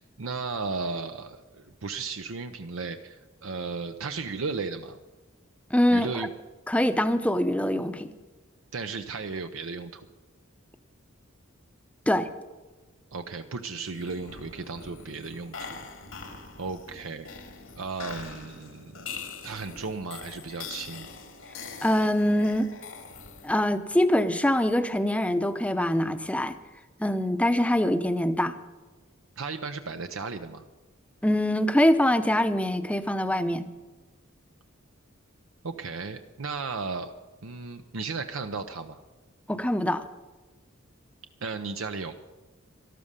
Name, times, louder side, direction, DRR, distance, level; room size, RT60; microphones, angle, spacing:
voice 1, 0.0-5.0 5.9-6.3 8.7-10.0 13.1-15.8 16.6-17.3 17.8-19.1 19.4-21.1 29.4-30.6 35.6-37.1 37.4-39.0 41.4-42.1, right 4 dB, 80° right, 7 dB, 0.7 m, -35 dB
voice 2, 5.7-6.3 6.7-8.1 12.1-12.3 21.8-22.7 23.4-26.5 27.0-28.5 31.2-33.7 39.5-40.0, left 1 dB, 5° left, 10 dB, 0.7 m, -24 dB
sound 1, 13.9-23.8, left 5 dB, 90° left, 2.3 m, -43 dB
12.5 x 12.5 x 6.6 m, 1.2 s
head